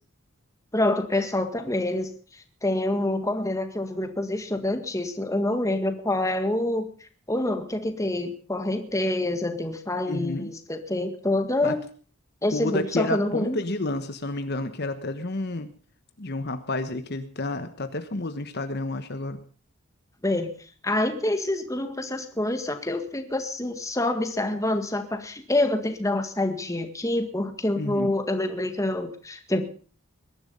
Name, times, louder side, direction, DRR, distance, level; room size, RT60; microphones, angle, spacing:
voice 1, 0.7-11.8 12.4-13.6 20.2-20.5 20.8-29.7, left 1 dB, 15° left, 7 dB, 1.8 m, -27 dB
voice 2, 10.1-10.5 11.6-11.8 12.5-15.7 16.2-19.4 27.7-28.1, left 2 dB, 50° left, 9 dB, 1.2 m, -30 dB
21.5 x 11.5 x 5.4 m, 0.43 s
head